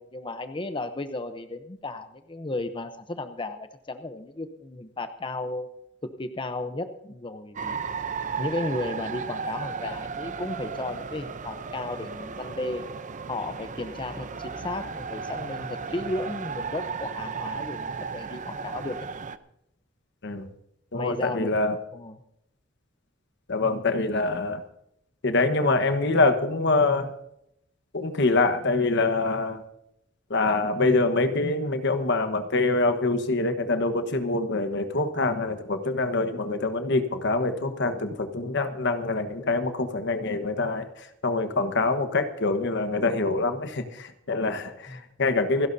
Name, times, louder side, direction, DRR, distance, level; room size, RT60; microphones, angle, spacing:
voice 1, 0.0-5.7 6.0-7.8 8.4-12.8 13.3-19.0 20.9-21.6 21.9-22.2 44.9-45.0, left 2 dB, 25° left, 8 dB, 0.8 m, -34 dB
sound 1, 7.6-19.4, right 5 dB, 40° right, 0.7 m, -35 dB
voice 2, 20.9-21.8 23.5-24.6 25.2-27.1 27.9-29.6 30.3-45.7, left 3 dB, 65° left, 9 dB, 1.3 m, -25 dB
27.5 x 12.0 x 2.7 m, 0.79 s
head